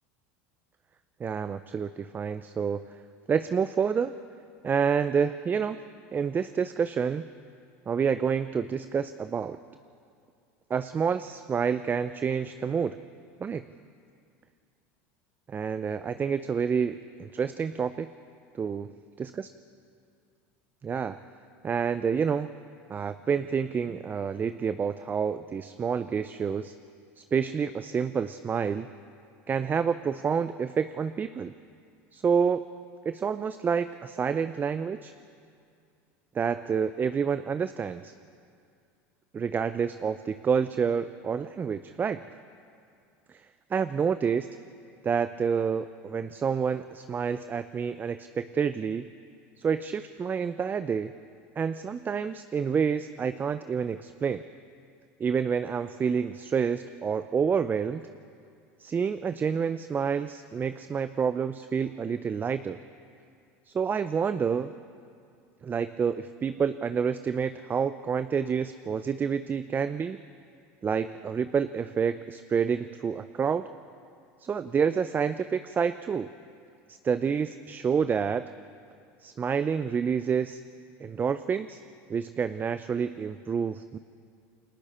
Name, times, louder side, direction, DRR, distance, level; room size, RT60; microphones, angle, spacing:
voice 1, 1.2-2.9 3.3-4.1 4.6-5.8 6.1-7.2 7.9-9.6 10.7-13.0 13.4-13.6 15.5-18.1 18.6-18.9 19.2-19.5 20.8-21.2 21.6-22.5 22.9-26.8 27.2-28.9 29.5-31.5 32.1-32.6 33.0-35.1 36.3-38.1 39.3-42.2 43.3-43.4 43.7-44.5 45.0-49.1 49.6-51.1 51.6-54.4 55.2-58.0 58.8-62.8 63.7-64.7 65.6-70.2 70.8-73.6 74.4-76.3 76.9-78.5 79.2-80.6 81.0-81.8 82.1-84.0, right 6 dB, 25° right, 12 dB, 0.6 m, -28 dB
29.5 x 22.0 x 4.4 m, 2.3 s
supercardioid pair, 100°, 8 cm